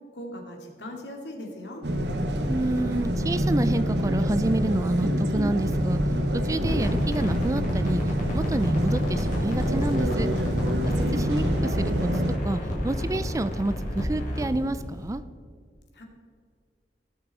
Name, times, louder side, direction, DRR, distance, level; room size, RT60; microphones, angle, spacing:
voice 1, 0.1-1.8 15.9-16.0, left 1 dB, 85° left, 2 dB, 2.3 m, -39 dB
sound 1, 1.8-12.4, equal, 75° right, 1.1 m, -26 dB
voice 2, 2.5-6.0 6.4-8.0 8.3-10.3 11.1-12.1 12.4-15.2, right 1 dB, 20° right, 13 dB, 0.4 m, -28 dB
sound 2, 6.5-15.1, equal, 45° left, 3.0 m, -31 dB
18.0 x 6.9 x 4.2 m, 2.1 s
head